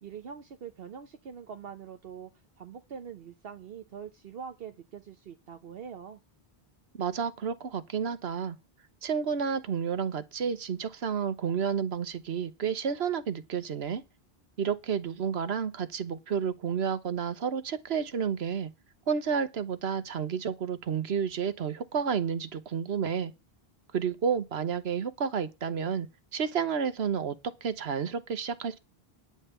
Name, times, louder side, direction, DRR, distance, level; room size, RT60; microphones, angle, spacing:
voice 1, 0.0-2.3 2.6-6.2, right 7 dB, 70° right, 1.1 m, -43 dB
voice 2, 6.9-8.6 9.0-14.0 14.6-18.7 19.1-23.3 23.9-26.1 26.3-28.8, right 7 dB, 90° right, 1.3 m, -31 dB
9.8 x 5.6 x 8.2 m
omnidirectional pair, 1.0 m